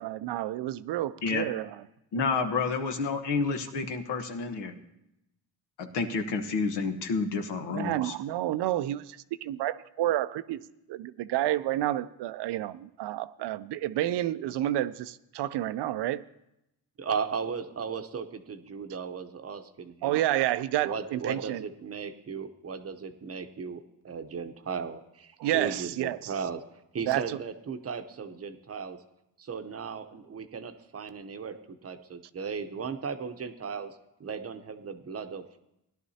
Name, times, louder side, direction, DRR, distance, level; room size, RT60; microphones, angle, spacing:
voice 1, 0.0-1.6 7.7-10.6 10.9-16.2 20.0-21.7 25.4-26.3 27.1-27.4, right 14 dB, 75° right, 0.6 m, -30 dB
voice 2, 2.1-4.7 5.8-8.1, left 4 dB, 80° left, 1.2 m, -29 dB
voice 3, 17.0-20.2 20.8-26.6 26.9-29.0 29.4-33.9 34.2-35.4, right 6 dB, 35° right, 0.8 m, -36 dB
17.0 x 11.0 x 2.8 m
cardioid pair, 105°, 41 cm